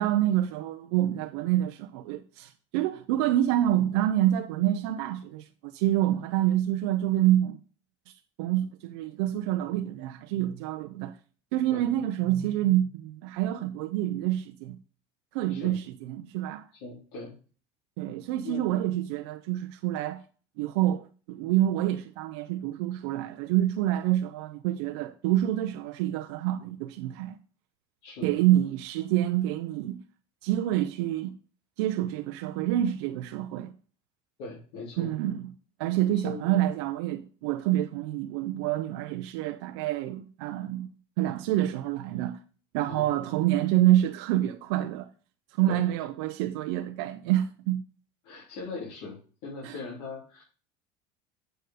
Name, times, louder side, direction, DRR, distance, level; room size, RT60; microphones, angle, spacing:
voice 1, 0.0-7.6 8.4-11.2 11.5-14.8 15.3-16.7 18.0-20.2 20.6-27.4 28.2-30.0 30.4-31.3 31.8-33.7 35.0-35.5 35.8-40.9 41.2-42.4 42.7-45.1 45.6-47.8 49.6-49.8, right 13 dB, 80° right, 0.6 m, -27 dB
voice 2, 16.8-17.4 18.4-18.6 28.0-28.4 34.4-35.1 35.9-36.4 42.9-43.1 45.7-45.8 48.2-50.4, left 3 dB, 75° left, 3.6 m, -40 dB
7.8 x 4.6 x 4.9 m
cardioid pair, 140°, 14 cm